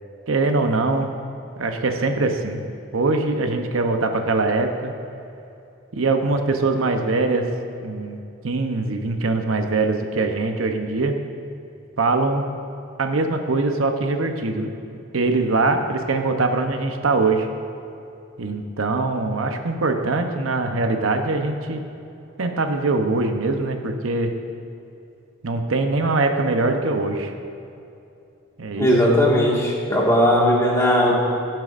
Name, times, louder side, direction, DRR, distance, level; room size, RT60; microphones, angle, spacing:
voice 1, 0.3-1.1 1.6-2.6 2.9-4.9 5.9-7.5 7.8-8.2 8.4-11.2 12.0-12.4 13.0-14.7 15.1-17.5 18.4-21.8 22.4-24.3 25.4-27.3 28.6-28.9, right 3 dB, 80° right, 5 dB, 0.8 m, -22 dB
voice 2, 28.8-31.2, equal, 15° left, -5 dB, 1.8 m, -18 dB
16.5 x 7.6 x 2.5 m, 2.7 s
head